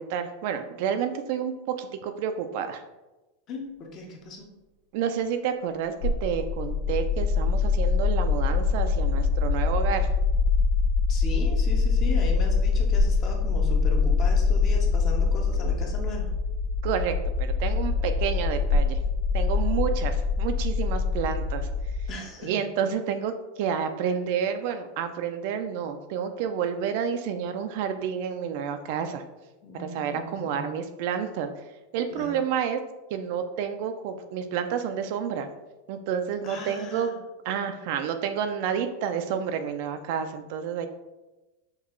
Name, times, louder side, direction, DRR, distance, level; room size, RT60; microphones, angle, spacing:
voice 1, 0.0-2.8 4.9-10.1 16.8-19.0 19.3-21.7 22.4-29.2 29.7-31.5 31.9-32.8 33.1-35.5 35.9-37.1 37.5-40.9, right 7 dB, 50° right, 8 dB, 0.3 m, -29 dB
voice 2, 3.5-4.5 11.1-16.3 22.1-22.5 29.6-30.7 32.1-32.4 36.4-37.2, left 2 dB, 30° left, 2 dB, 0.6 m, -37 dB
sound 1, 6.0-22.1, left 4 dB, 70° left, 0.8 m, -24 dB
5.7 x 2.3 x 3.0 m, 1.1 s
supercardioid pair, 165°, 0 cm